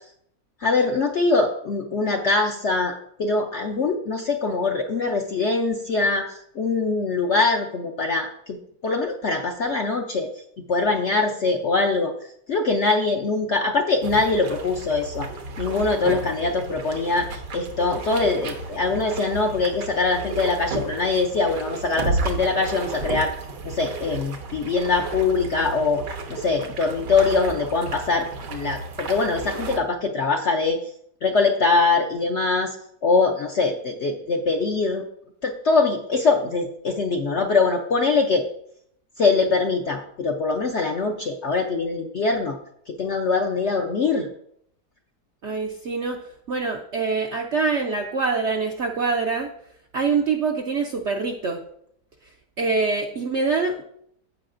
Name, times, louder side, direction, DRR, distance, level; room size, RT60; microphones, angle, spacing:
voice 1, 0.6-2.9 3.2-8.6 8.8-10.3 10.7-12.1 12.5-15.3 15.6-23.3 23.6-30.8 31.2-32.8 33.0-35.0 35.4-38.4 39.2-42.6 42.9-44.3, left 3 dB, 60° left, 3 dB, 0.7 m, -23 dB
sound 1, 14.0-29.8, right 3 dB, 80° right, 1.7 m, -33 dB
voice 2, 45.4-46.2 46.5-49.5 49.9-51.6 52.6-53.8, right 4 dB, 65° right, 3 dB, 0.7 m, -24 dB
15.5 x 5.6 x 2.5 m, 0.71 s
omnidirectional pair, 1.8 m